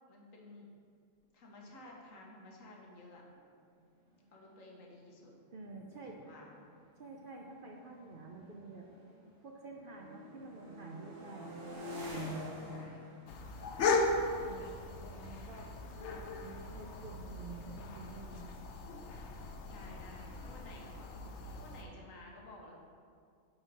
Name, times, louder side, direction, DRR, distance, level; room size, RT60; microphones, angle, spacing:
voice 1, 0.1-0.7 1.3-3.2 4.3-5.3 6.1-6.5 12.6-13.2 19.6-22.8, left 2 dB, 85° left, -1 dB, 1.5 m, -54 dB
sound 1, 4.0-4.1 4.3-4.7 5.4-9.3 9.7-16.3, equal, 90° right, 2.3 m, -48 dB
voice 2, 5.5-6.2 7.0-8.9 9.4-11.6 14.4-14.7 15.1-18.4, right 3 dB, 55° right, 0 dB, 0.7 m, -49 dB
sound 2, 13.3-21.8, left 3 dB, 65° left, 0.9 m, -37 dB
7.6 x 4.4 x 4.7 m, 2.2 s
omnidirectional pair, 1.4 m